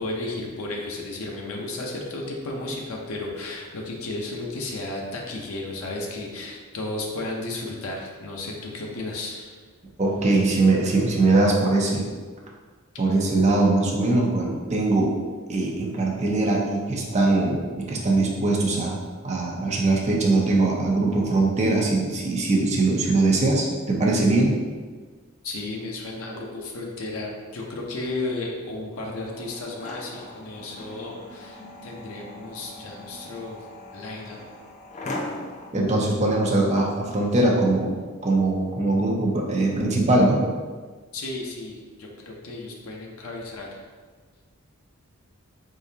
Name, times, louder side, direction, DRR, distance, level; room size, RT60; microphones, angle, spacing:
voice 1, 0.0-9.6 25.4-33.6 33.9-34.4 41.1-43.8, left 2 dB, 75° left, -1 dB, 0.6 m, -33 dB
voice 2, 10.0-12.1 13.0-15.2 15.5-19.0 19.2-24.6 35.7-37.9 38.2-40.4, right 2 dB, 30° right, -1 dB, 0.6 m, -21 dB
sound 1, 28.9-35.7, left 1 dB, 35° left, 0.4 m, -39 dB
3.8 x 3.8 x 2.7 m, 1.5 s
head